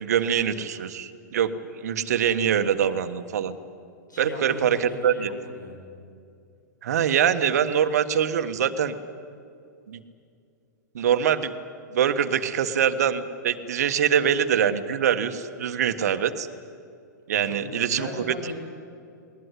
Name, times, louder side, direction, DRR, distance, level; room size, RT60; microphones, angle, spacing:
voice 1, 0.0-3.6 4.2-5.3 6.8-8.9 9.9-10.0 10.9-11.5 11.9-16.5 17.3-18.1, right 8 dB, 55° right, 10 dB, 1.4 m, -24 dB
voice 2, 4.1-5.9 17.3-18.5, left 1 dB, 80° left, 1 dB, 7.3 m, -38 dB
20.5 x 20.0 x 9.8 m, 2.4 s
figure-of-eight pair, 105°, 10 cm